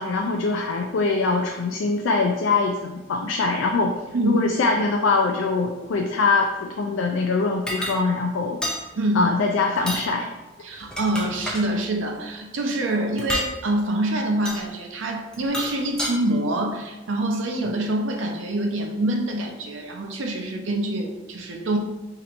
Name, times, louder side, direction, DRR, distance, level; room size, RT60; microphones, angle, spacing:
voice 1, 0.0-3.9 4.2-8.6 9.2-10.3, left 3 dB, 85° left, 2 dB, 0.4 m, -23 dB
sound 1, 7.7-8.0 8.6-8.8 9.8-10.1 10.8-11.7 13.2-13.5 14.5-14.6 15.3-16.1, equal, 5° left, 0.4 m, -29 dB
voice 2, 9.0-9.3 10.6-21.8, right 1 dB, 90° right, 2 dB, 0.6 m, -25 dB
4.4 x 2.9 x 2.5 m, 1.1 s
head